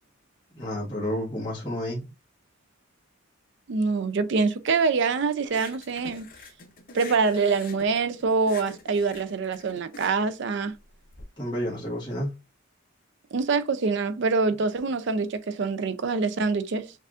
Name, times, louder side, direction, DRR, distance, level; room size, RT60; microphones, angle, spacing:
voice 1, 0.5-2.0 11.4-12.3, equal, 20° left, 1.1 m, -30 dB
voice 2, 3.7-6.3 6.9-10.8 13.3-16.9, right 4 dB, 60° right, 0.4 m, -25 dB
sound 1, 5.5-11.2, left 4 dB, 45° left, 0.6 m, -46 dB
6.5 x 2.4 x 2.4 m
head